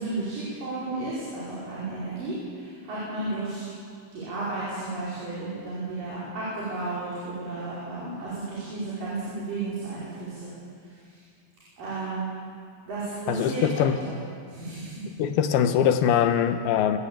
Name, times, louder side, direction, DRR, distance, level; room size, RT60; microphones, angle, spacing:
voice 1, 0.0-3.7 4.1-10.5 11.8-12.3 12.9-14.1 14.5-14.9, right 2 dB, 60° right, -9 dB, 6.9 m, -33 dB
voice 2, 13.3-14.0 15.2-17.0, left 9 dB, 85° left, 9 dB, 3.0 m, -22 dB
24.5 x 15.0 x 8.9 m, 2.2 s
omnidirectional pair, 4.3 m